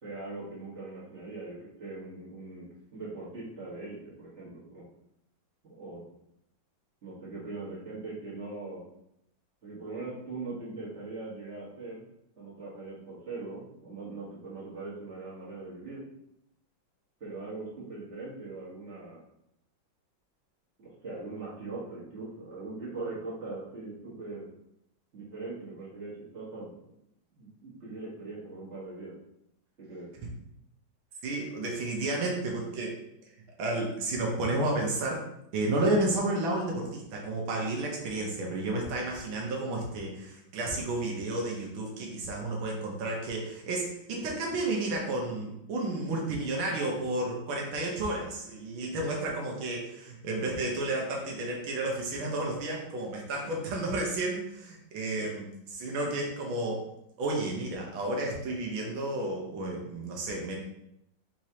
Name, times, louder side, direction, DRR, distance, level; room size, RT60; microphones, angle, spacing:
voice 1, 0.0-4.8 5.6-6.0 7.0-8.8 9.6-12.0 12.4-16.0 17.2-19.2 20.8-24.5 25.1-26.7 27.3-29.1 29.8-30.1 53.4-53.5 55.2-55.3, right 3 dB, 40° right, -8 dB, 1.6 m, -41 dB
voice 2, 31.2-33.0 33.6-35.3 35.5-56.8 57.2-60.5, right 2 dB, 80° right, -1 dB, 1.6 m, -31 dB
4.7 x 3.1 x 2.8 m, 0.79 s
omnidirectional pair, 2.2 m